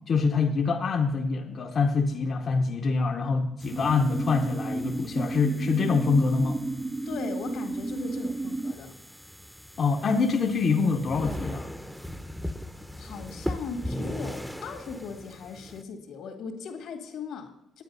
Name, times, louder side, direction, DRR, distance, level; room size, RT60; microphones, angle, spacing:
voice 1, 0.1-6.6 9.8-11.7, left 4 dB, 50° left, 3 dB, 0.8 m, -25 dB
sound 1, 3.6-15.8, equal, ahead, 0.7 m, -39 dB
sound 2, 3.7-8.7, right 2 dB, 20° right, 0.3 m, -32 dB
voice 2, 7.1-9.0 13.0-17.8, left 5 dB, 80° left, 4 dB, 1.9 m, -38 dB
10.0 x 8.9 x 5.4 m, 0.83 s
cardioid pair, 90°, 0 cm